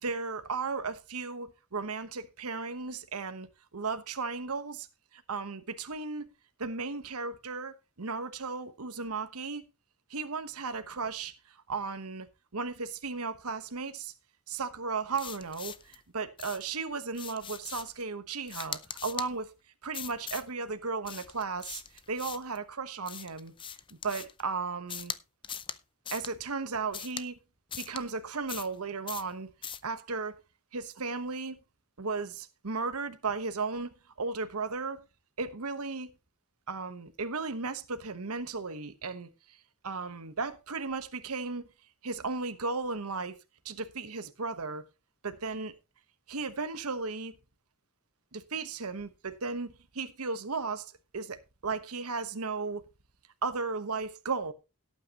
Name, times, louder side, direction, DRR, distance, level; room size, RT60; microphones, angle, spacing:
voice 1, 0.0-3.5 3.7-4.9 5.1-6.3 6.6-9.6 10.1-11.3 11.7-12.3 12.5-14.1 14.5-19.5 19.8-21.8 22.1-23.5 24.0-25.1 26.1-27.4 27.8-30.4 30.7-31.6 32.0-35.0 35.4-36.1 36.7-39.3 39.8-41.7 42.0-43.3 43.6-44.8 45.2-45.7 46.3-47.3 48.3-52.8 53.4-54.5, right 4 dB, 85° right, 1.1 m, -35 dB
sound 1, 15.1-16.0 16.4-16.7 17.1-18.0 18.5-19.3 19.9-20.5 21.0-22.6 23.1-24.4 24.9-25.2 25.4-25.8 26.1-26.3 26.9-27.3 27.7-28.0 28.5-28.8 29.1-29.3 29.6-29.9, left 8 dB, 25° left, 0.5 m, -41 dB
17.0 x 8.7 x 3.0 m
head